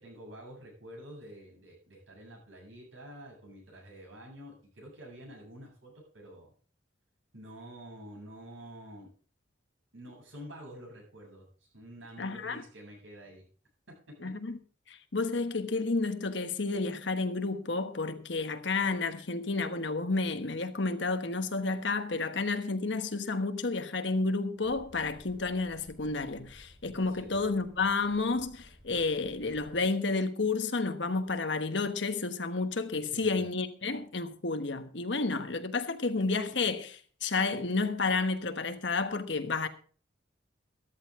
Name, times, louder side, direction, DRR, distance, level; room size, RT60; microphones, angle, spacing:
voice 1, 0.0-6.5 7.3-9.1 9.9-13.5 13.9-14.3 27.2-27.4 33.0-33.4, equal, 85° right, 7.9 m, -48 dB
voice 2, 12.2-12.6 14.2-14.6 14.9-39.7, left 3 dB, 65° left, 1.3 m, -31 dB
Boat Water vehicle, 24.6-29.8, equal, 40° right, 7.3 m, -56 dB
13.5 x 13.0 x 3.7 m
head